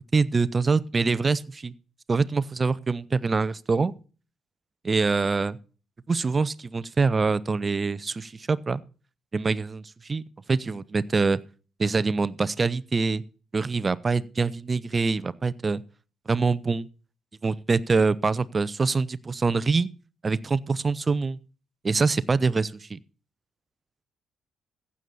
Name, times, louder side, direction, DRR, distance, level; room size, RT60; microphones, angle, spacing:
voice 1, 0.0-1.7 2.1-3.9 4.8-5.6 6.1-8.8 9.3-10.2 10.5-11.4 11.8-13.2 13.5-15.8 16.3-16.9 17.4-19.9 20.2-21.4 21.8-23.0, right 4 dB, 35° right, 0.6 m, -25 dB
15.0 x 8.6 x 4.1 m
figure-of-eight pair, 45°, 0 cm